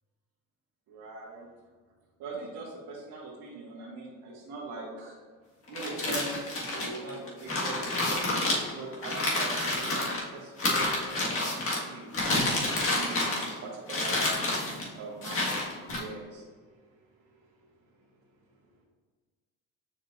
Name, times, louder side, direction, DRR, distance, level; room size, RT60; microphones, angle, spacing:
voice 1, 0.9-1.4 2.2-5.2 5.7-7.8 8.1-10.1 10.3-14.3 14.7-16.7 17.3-17.4, right 3 dB, 80° right, -6 dB, 1.6 m, -42 dB
sound 1, 5.7-10.2 10.6-11.8 12.1-13.6 13.9-14.9 15.2-16.0, left 2 dB, 40° left, 1.8 m, -29 dB
7.1 x 5.4 x 2.6 m, 1.5 s
cardioid pair, 115°, 33 cm